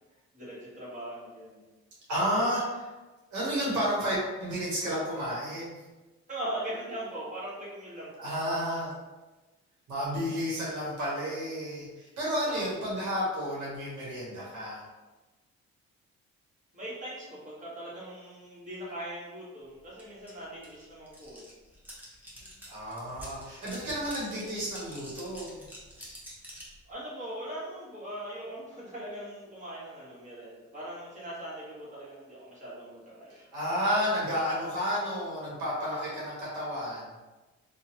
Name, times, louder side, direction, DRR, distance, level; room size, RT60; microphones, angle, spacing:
voice 1, 0.3-1.7 6.3-8.1 12.4-12.6 16.7-21.4 26.8-33.4, right 1 dB, 25° right, -8 dB, 1.3 m, -40 dB
voice 2, 2.1-2.9 3.3-5.8 8.2-8.9 9.9-14.8 22.7-25.6 33.3-37.1, equal, 75° right, -6 dB, 1.1 m, -31 dB
sound 1, 20.0-20.1 20.3-26.8, equal, 5° right, 0.9 m, -47 dB
2.8 x 2.3 x 2.8 m, 1.2 s
cardioid pair, 90°, 30 cm